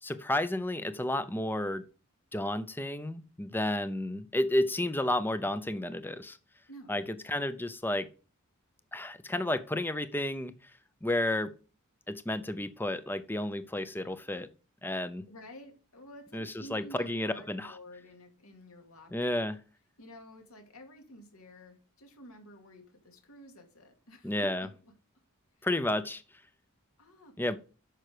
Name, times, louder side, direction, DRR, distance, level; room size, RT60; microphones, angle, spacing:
voice 1, 0.0-1.8 2.3-6.4 6.9-8.1 8.9-10.7 11.0-11.5 12.1-14.5 14.8-15.3 16.3-17.8 19.1-19.6 24.2-24.7 25.6-26.2 27.4-27.6, left 1 dB, 10° left, 12 dB, 0.6 m, -31 dB
voice 2, 6.7-7.3 15.3-19.4 20.0-24.9 25.6-25.7 27.0-27.3, equal, 75° left, 3 dB, 2.3 m, -51 dB
9.0 x 6.4 x 4.9 m, 0.36 s
head